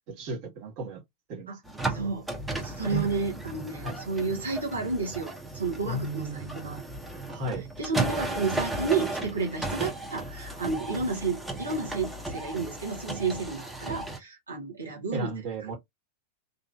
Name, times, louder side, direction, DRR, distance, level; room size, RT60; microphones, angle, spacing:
voice 1, 0.1-1.0 1.3-1.5 2.9-3.0 3.8-4.0 5.8-6.8 7.3-7.6 15.1-15.8, right 2 dB, 40° right, 1.3 m, -34 dB
sound 1, 1.6-14.2, right 2 dB, 5° right, 0.7 m, -35 dB
voice 2, 1.9-2.3 2.6-6.8 7.8-15.3 15.6-15.8, right 4 dB, 75° right, 1.0 m, -31 dB
2.8 x 2.5 x 2.3 m
figure-of-eight pair, 90°, 0 cm